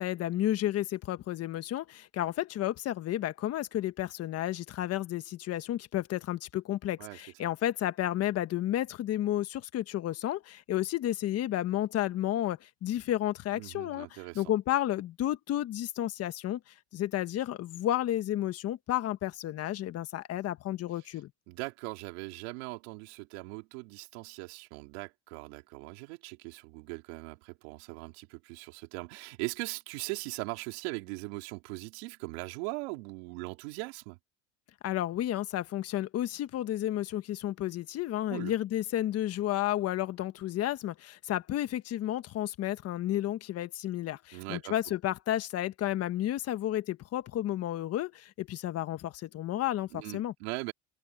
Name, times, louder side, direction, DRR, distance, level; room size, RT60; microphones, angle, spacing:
voice 1, 0.0-21.3 34.8-50.3, left 13 dB, 50° left, 1.3 m, -32 dB
voice 2, 13.5-14.4 21.5-34.2 38.3-38.5 44.3-44.8 49.9-50.7, right 26 dB, 90° right, 4.1 m, -40 dB
supercardioid pair, 110°, 31 cm